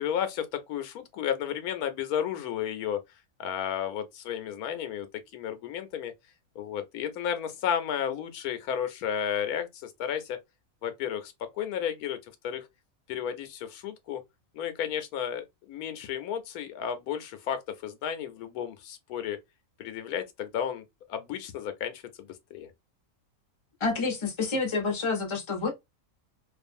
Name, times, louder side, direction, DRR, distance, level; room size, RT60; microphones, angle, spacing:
voice 1, 0.0-3.0 3.4-5.1 5.3-6.1 6.6-10.4 10.8-12.2 12.4-12.6 13.1-14.2 14.5-19.4 19.8-20.8 21.1-22.7, left 9 dB, 90° left, 1.1 m, -33 dB
voice 2, 23.8-25.7, left 4 dB, 25° left, 0.7 m, -28 dB
2.6 x 2.4 x 2.4 m
omnidirectional pair, 1.5 m